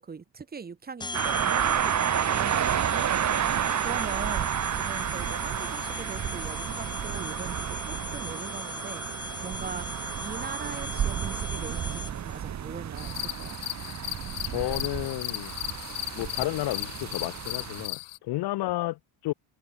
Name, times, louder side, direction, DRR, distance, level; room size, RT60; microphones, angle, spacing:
voice 1, 0.0-3.4 3.8-9.1 9.4-9.9 10.2-13.6, right 5 dB, 20° right, 1.1 m, -41 dB
sound 1, 1.0-12.4, left 3 dB, 10° left, 0.7 m, -39 dB
sound 2, 1.1-17.9, right 9 dB, 35° right, 1.5 m, -31 dB
sound 3, 13.0-18.2, left 21 dB, 85° left, 1.5 m, -36 dB
voice 2, 14.4-15.5 16.2-19.3, left 17 dB, 55° left, 0.6 m, -31 dB
cardioid pair, 140°, 48 cm